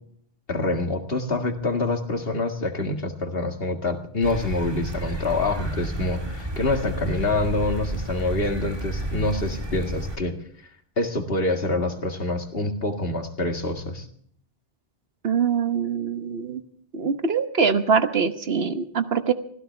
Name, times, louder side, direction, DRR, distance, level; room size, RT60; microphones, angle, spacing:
voice 1, 0.5-10.4 11.0-14.1, left 2 dB, 65° left, 5 dB, 2.2 m, -26 dB
sound 1, 4.2-10.2, right 1 dB, 25° right, 1.9 m, -31 dB
voice 2, 15.2-16.6 16.9-19.3, right 6 dB, 65° right, 10 dB, 1.3 m, -23 dB
24.5 x 16.0 x 3.3 m, 0.62 s
omnidirectional pair, 1.1 m